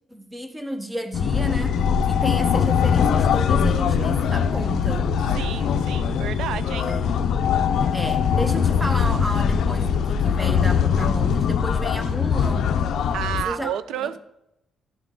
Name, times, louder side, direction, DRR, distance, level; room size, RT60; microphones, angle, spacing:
voice 1, 0.1-5.1 6.9-7.1 7.9-12.8 13.4-13.7 14.0-14.2, equal, 10° right, 7 dB, 0.8 m, -32 dB
sound 1, 1.1-13.4, left 7 dB, 70° left, 0.4 m, -21 dB
voice 2, 5.2-6.9 13.1-14.2, right 10 dB, 80° right, 14 dB, 0.3 m, -31 dB
10.5 x 3.7 x 3.7 m, 0.86 s
cardioid pair, 90°, 0 cm